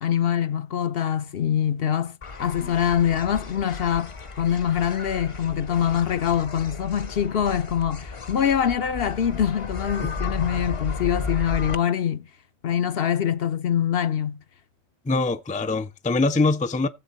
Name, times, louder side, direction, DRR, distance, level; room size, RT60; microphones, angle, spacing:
voice 1, 0.0-2.1 2.4-12.2 12.6-14.4, left 9 dB, 65° left, 0.9 m, -24 dB
sound 1, 2.2-11.7, left 4 dB, 35° left, 0.7 m, -34 dB
voice 2, 15.1-16.9, left 3 dB, 10° left, 0.4 m, -23 dB
15.0 x 7.5 x 4.0 m
omnidirectional pair, 1.1 m